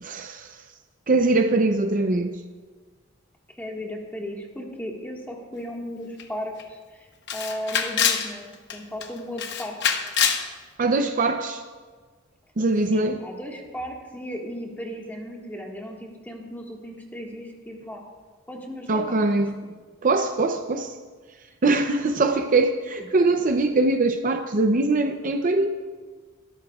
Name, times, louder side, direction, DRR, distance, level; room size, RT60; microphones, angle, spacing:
voice 1, 0.0-0.6 1.1-2.4 10.8-11.6 12.6-13.2 18.9-19.5 20.0-21.0 21.6-25.7, right 3 dB, 40° right, 6 dB, 0.6 m, -22 dB
voice 2, 3.6-9.8 12.9-18.0 18.5-19.2 19.6-19.7, equal, 10° left, -1 dB, 1.7 m, -36 dB
Camera, 6.2-6.3 6.6-6.7 7.3-8.3 8.7-9.1 9.4-10.5, left 7 dB, 60° left, 1.0 m, -24 dB
22.5 x 12.5 x 2.4 m, 1.4 s
head